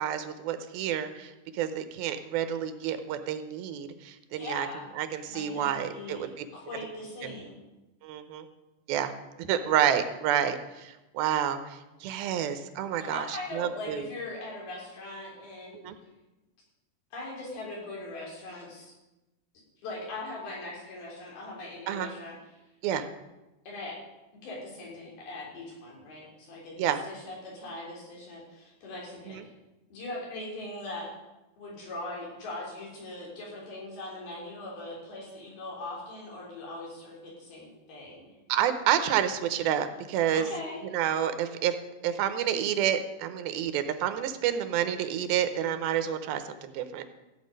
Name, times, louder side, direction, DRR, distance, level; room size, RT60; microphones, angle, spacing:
voice 1, 0.0-4.7 5.0-6.4 7.2-7.3 8.0-8.5 8.9-9.1 9.4-14.1 15.7-16.0 21.9-22.1 22.8-23.1 26.8-27.0 29.3-29.4 38.5-40.5 40.9-41.8 42.0-47.1, right 10 dB, 85° right, 9 dB, 2.7 m, -29 dB
voice 2, 4.3-4.9 5.3-7.6 13.0-15.9 17.1-18.9 19.8-22.4 23.7-23.9 24.4-29.4 29.9-31.1 31.6-38.4 40.3-40.8, left 2 dB, 90° left, -4 dB, 5.5 m, -40 dB
15.0 x 8.3 x 5.2 m, 1.0 s
omnidirectional pair, 4.2 m